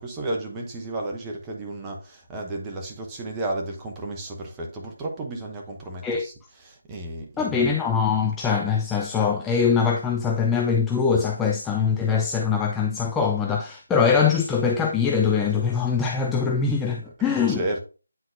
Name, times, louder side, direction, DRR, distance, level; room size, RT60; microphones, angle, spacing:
voice 1, 0.0-7.7 17.0-17.8, right 2 dB, 10° right, 0.9 m, -33 dB
voice 2, 7.4-17.6, left 6 dB, 5° left, 0.4 m, -22 dB
9.2 x 3.9 x 2.7 m
figure-of-eight pair, 160°, 0 cm